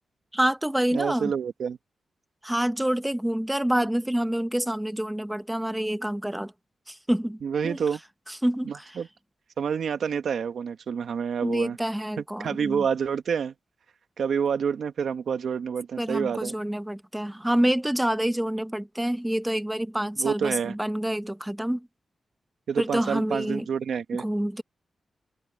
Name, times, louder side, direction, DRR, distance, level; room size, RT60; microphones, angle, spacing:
voice 1, 0.3-1.3 2.4-6.5 6.9-7.8 8.3-9.0 11.4-12.8 16.0-21.9 22.8-23.6 24.1-24.6, right 1 dB, 5° right, 1.2 m, -27 dB
voice 2, 0.9-1.8 7.4-8.0 8.6-9.1 9.6-11.8 12.2-13.5 14.2-16.5 20.2-20.7 22.7-24.2, right 7 dB, 80° right, 1.5 m, -28 dB
wide cardioid pair, 100°, 0 cm